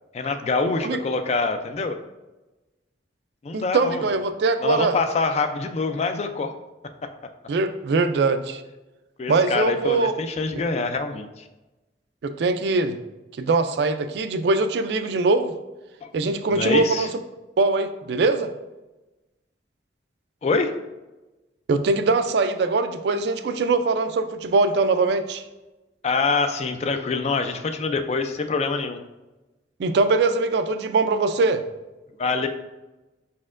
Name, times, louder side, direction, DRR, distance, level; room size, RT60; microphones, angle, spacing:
voice 1, 0.1-2.0 3.4-4.0 4.6-6.5 9.2-11.4 16.0-16.1 16.5-17.1 20.4-20.7 26.0-29.0 32.2-32.5, left 4 dB, 35° left, 8 dB, 0.3 m, -25 dB
voice 2, 3.5-5.0 7.5-8.6 9.3-10.1 12.2-13.0 13.4-15.5 16.1-17.1 17.6-18.5 21.7-25.4 29.8-31.6, right 3 dB, 65° right, 9 dB, 0.3 m, -22 dB
5.2 x 4.2 x 2.5 m, 1.1 s
head